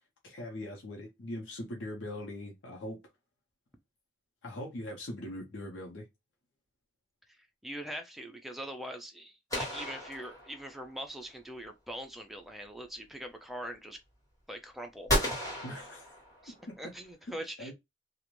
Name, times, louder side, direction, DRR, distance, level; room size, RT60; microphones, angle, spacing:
voice 1, 0.2-3.0 4.4-6.1 15.6-16.1 16.5-16.7 17.6-17.7, left 1 dB, 90° left, 0.7 m, -41 dB
voice 2, 7.6-14.0 14.5-15.1 16.4-17.7, equal, ahead, 0.4 m, -42 dB
sound 1, 9.5-11.0 15.1-16.7, equal, 20° left, 1.2 m, -33 dB
2.4 x 2.1 x 3.0 m
head